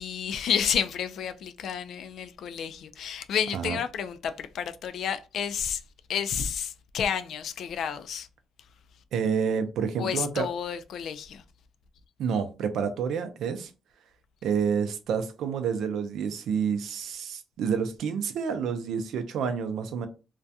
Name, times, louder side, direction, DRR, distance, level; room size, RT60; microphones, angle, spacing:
voice 1, 0.0-5.8 6.1-8.3 10.0-11.4, left 8 dB, 70° left, 0.3 m, -30 dB
voice 2, 9.1-10.5 12.2-13.7 14.4-20.1, right 6 dB, 75° right, 0.4 m, -29 dB
2.4 x 2.2 x 2.6 m
cardioid pair, 90°, 0 cm